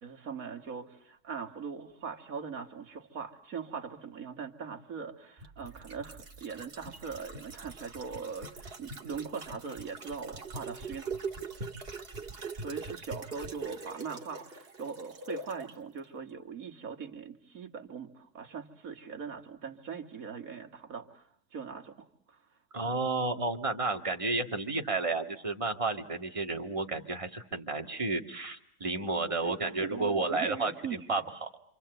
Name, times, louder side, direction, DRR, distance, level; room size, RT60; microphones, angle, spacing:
voice 1, 0.0-11.1 12.3-22.6 29.3-31.1, right 6 dB, 60° right, 6 dB, 2.1 m, -41 dB
sound 1, 5.4-15.7 16.0-16.1, right 3 dB, 40° right, 2.0 m, -42 dB
voice 2, 22.7-31.5, right 3 dB, 20° right, 3 dB, 2.0 m, -32 dB
27.5 x 27.0 x 8.0 m, 0.68 s
omnidirectional pair, 1.6 m